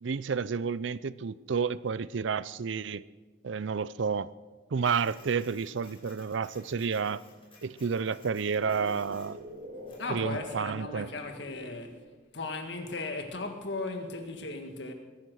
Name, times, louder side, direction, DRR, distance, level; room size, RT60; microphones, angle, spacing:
voice 1, 0.0-3.0 3.4-4.3 4.7-7.2 7.6-9.4 10.1-11.1, right 5 dB, 70° right, 0.5 m, -30 dB
Printer, 4.8-10.1, left 3 dB, 30° left, 4.7 m, -56 dB
sound 1, 5.2-5.3 8.2-11.9, right 1 dB, 55° right, 3.4 m, -46 dB
voice 2, 10.0-12.0 12.3-14.9, left 3 dB, 60° left, 1.9 m, -37 dB
21.0 x 10.5 x 6.4 m
head